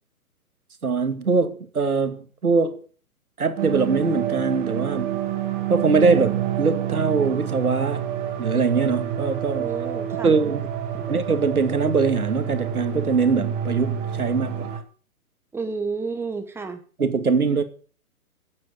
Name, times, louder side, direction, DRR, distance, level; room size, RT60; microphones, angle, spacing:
voice 1, 0.8-2.8 3.4-5.2 5.7-8.1 8.4-9.7 10.2-10.6 11.1-14.8 17.0-17.6, right 4 dB, 75° right, 2.5 m, -22 dB
sound 1, 3.6-14.8, right 10 dB, 35° right, 3.6 m, -28 dB
voice 2, 9.6-10.3 10.9-11.1 15.5-16.8, right 4 dB, 5° right, 1.6 m, -31 dB
15.5 x 9.1 x 7.0 m
figure-of-eight pair, 130°, 44 cm